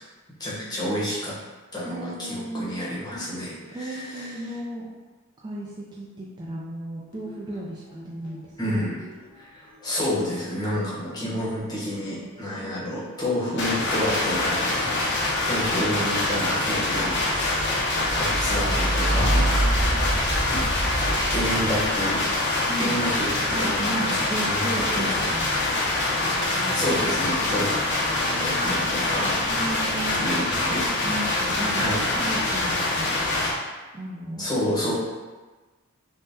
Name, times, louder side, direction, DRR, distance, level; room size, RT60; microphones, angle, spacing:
voice 1, 0.4-1.4 1.7-4.4 8.6-9.0 9.3-17.8 18.2-19.5 19.8-20.1 21.3-22.2 22.8-25.6 26.7-27.8 28.4-29.8 30.1-30.9 31.7-32.0 34.4-34.9, equal, 20° left, -7 dB, 0.8 m, -30 dB
voice 2, 1.9-2.8 3.7-4.9 5.4-8.9 10.7-11.3 19.3-20.0 22.6-23.0 23.5-25.6 26.1-27.2 27.5-27.6 28.2-28.8 29.5-30.2 31.0-33.2 33.9-34.5, right 1 dB, 20° right, -6 dB, 0.3 m, -35 dB
sound 1, 7.1-8.4 8.7-23.7 24.5-25.1, right 1 dB, 85° left, 0.9 m, -31 dB
sound 2, 13.6-33.5, left 2 dB, 55° left, 0.5 m, -25 dB
3.5 x 2.1 x 2.6 m, 1.3 s
head